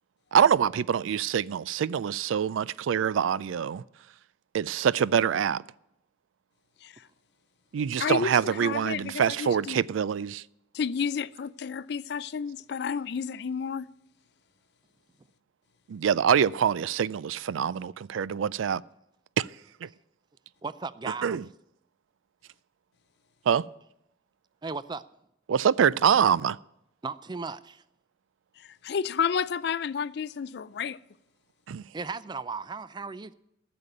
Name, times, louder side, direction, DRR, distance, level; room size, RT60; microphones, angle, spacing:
voice 1, 0.3-3.8 4.5-5.6 7.7-10.4 15.9-18.8 19.4-19.5 19.8-19.9 21.2-21.4 23.5-23.6 25.5-26.6 31.7-31.8, right 8 dB, 90° right, 0.4 m, -25 dB
voice 2, 8.0-9.8 10.7-13.9 28.6-31.0, left 6 dB, 60° left, 0.4 m, -31 dB
voice 3, 20.6-21.4 24.6-25.0 27.0-27.8 31.9-33.3, right 4 dB, 25° right, 0.4 m, -36 dB
12.0 x 6.9 x 8.8 m
head